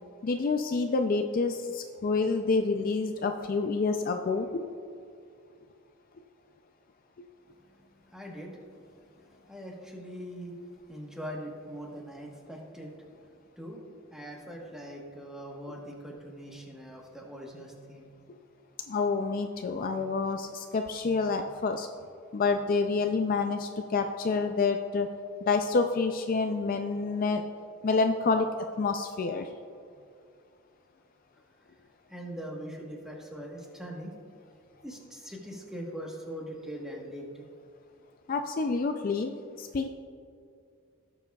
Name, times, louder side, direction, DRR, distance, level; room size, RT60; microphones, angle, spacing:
voice 1, 0.2-4.7 18.9-21.9 22.3-25.1 25.4-27.4 27.8-28.5 28.8-29.5 38.3-39.3 39.6-39.9, left 4 dB, 40° left, 5 dB, 0.4 m, -28 dB
voice 2, 7.8-8.8 9.2-10.5 10.9-12.9 13.6-13.8 14.1-18.1 32.1-34.1 34.8-37.5, equal, 5° right, -1 dB, 1.1 m, -42 dB
17.0 x 6.9 x 2.3 m, 2.4 s
head